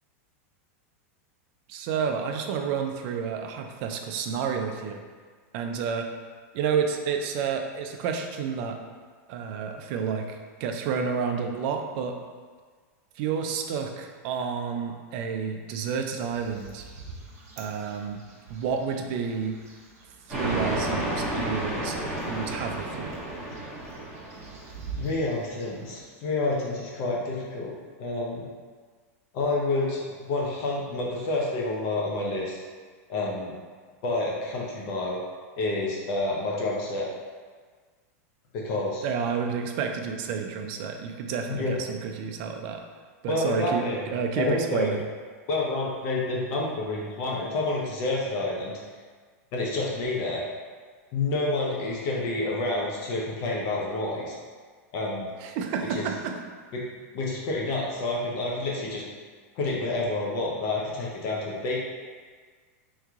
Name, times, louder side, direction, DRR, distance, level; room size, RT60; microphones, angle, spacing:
voice 1, 1.7-5.0 5.5-6.1 6.5-8.8 9.3-12.2 13.2-16.8 17.6-18.2 18.5-19.6 20.3-22.0 22.3-23.2 39.0-42.8 43.2-45.1 55.4-56.4, right 6 dB, 45° right, 4 dB, 0.4 m, -30 dB
sound 1, 16.1-26.1, right 4 dB, 80° right, 1.1 m, -46 dB
sound 2, 20.3-24.8, right 1 dB, ahead, 1.4 m, -31 dB
voice 2, 25.0-27.7 28.0-28.4 29.3-32.6 33.1-33.5 34.0-35.2 35.6-37.1 38.5-39.0 41.5-41.7 43.3-44.1 44.4-44.9 45.5-48.8 49.5-50.4 51.1-54.4 54.9-55.3 55.9-56.1 56.7-56.8 57.1-59.0 59.6-61.8, left 2 dB, 45° left, -3 dB, 0.7 m, -28 dB
3.6 x 3.1 x 3.5 m, 1.6 s
supercardioid pair, 155°, 8 cm